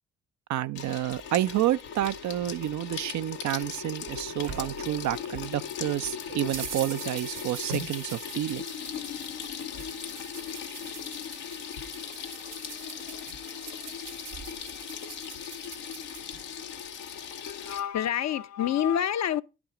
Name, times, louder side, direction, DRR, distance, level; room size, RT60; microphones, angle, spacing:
voice 1, 0.5-8.7, right 13 dB, 55° right, 0.5 m, -29 dB
Water tap faucet / Sink (filling or washing), 0.8-17.8, left 7 dB, 85° left, 1.2 m, -38 dB
sound 1, 3.6-5.5 5.9-16.4, right 5 dB, 85° right, 2.2 m, -43 dB
voice 2, 17.4-19.4, left 10 dB, 55° left, 0.7 m, -27 dB
10.5 x 6.0 x 4.9 m
hypercardioid pair, 45°, 34 cm